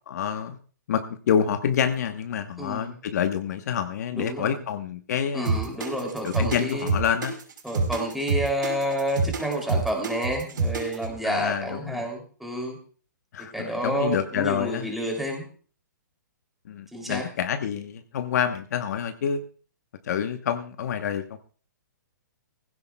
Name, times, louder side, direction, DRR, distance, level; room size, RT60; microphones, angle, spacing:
voice 1, 0.1-0.6 0.9-5.7 6.2-7.3 11.2-12.1 13.3-14.9 16.7-19.4 20.0-21.4, left 8 dB, 55° left, 8 dB, 1.1 m, -27 dB
voice 2, 2.6-2.9 4.1-4.5 5.3-6.9 7.6-12.8 13.4-15.5 16.9-17.2, right 1 dB, ahead, 0 dB, 3.0 m, -29 dB
sound 1, 5.4-11.1, right 3 dB, 80° right, 5.8 m, -27 dB
20.0 x 16.0 x 2.3 m, 0.41 s
hypercardioid pair, 155°, 11 cm